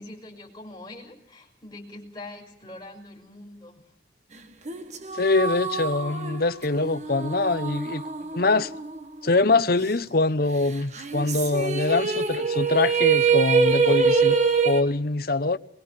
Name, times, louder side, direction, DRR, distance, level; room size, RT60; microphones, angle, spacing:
voice 1, 0.0-3.8, left 2 dB, 20° left, 5.2 m, -43 dB
sound 1, 4.7-9.3 9.6-9.7 10.9-14.8, right 5 dB, 40° right, 1.4 m, -24 dB
voice 2, 5.1-8.0 8.3-8.7 9.2-14.4 14.6-15.6, left 3 dB, 55° left, 0.9 m, -23 dB
22.0 x 21.5 x 7.5 m
head